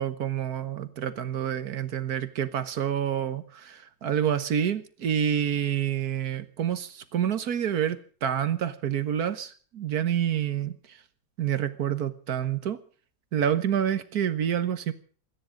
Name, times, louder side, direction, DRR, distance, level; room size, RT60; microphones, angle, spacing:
voice 1, 0.0-11.0 11.4-12.8 13.3-14.9, right 9 dB, 80° right, 1.7 m, -28 dB
26.5 x 10.5 x 5.1 m
omnidirectional pair, 1.6 m